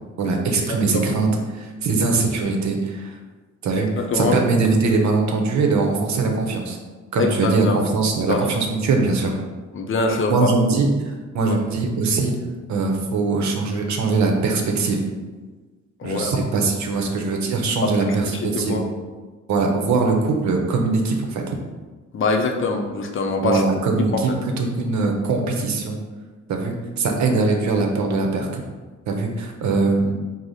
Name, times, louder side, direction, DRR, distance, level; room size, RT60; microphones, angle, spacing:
voice 1, 0.2-3.2 3.6-6.8 7.1-9.3 10.3-12.3 12.7-15.0 16.0-18.8 19.5-21.6 23.4-24.3 24.6-26.0 26.5-28.6 29.1-30.1, right 3 dB, 65° right, 2 dB, 0.8 m, -21 dB
voice 2, 0.7-1.1 3.7-4.4 7.2-7.8 8.3-8.4 9.7-10.5 11.5-11.6 16.0-16.3 17.8-18.8 22.1-23.6 24.1-24.4, left 3 dB, 45° left, 3 dB, 0.6 m, -24 dB
4.8 x 2.1 x 4.0 m, 1.3 s
cardioid pair, 90°, 30 cm